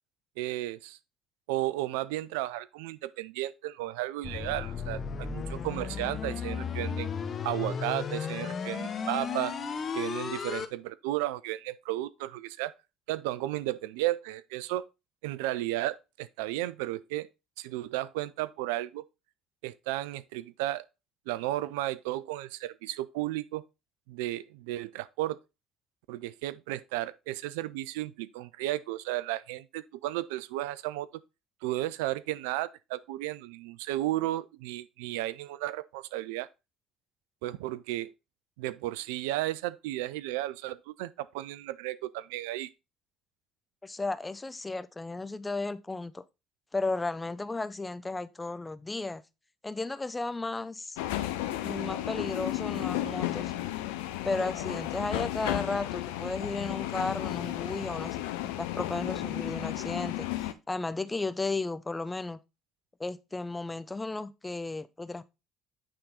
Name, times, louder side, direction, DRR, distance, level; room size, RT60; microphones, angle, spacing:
voice 1, 0.4-1.0 1.5-7.1 7.4-9.5 9.9-12.7 13.1-14.8 15.2-17.3 17.6-19.0 19.6-20.8 21.3-23.6 24.1-25.4 26.1-31.1 31.6-36.5 37.4-38.1 38.6-42.7, right 16 dB, 75° right, 0.3 m, -34 dB
sound 1, 4.2-10.7, left 6 dB, 45° left, 1.0 m, -34 dB
voice 2, 43.8-46.2 46.7-49.2 49.6-51.0 51.6-53.5 54.2-58.2 58.6-62.4 63.0-65.2, left 3 dB, 15° left, 0.6 m, -34 dB
sound 2, 51.0-60.5, left 14 dB, 75° left, 0.5 m, -33 dB
8.9 x 3.7 x 4.1 m
hypercardioid pair, 60°, 0 cm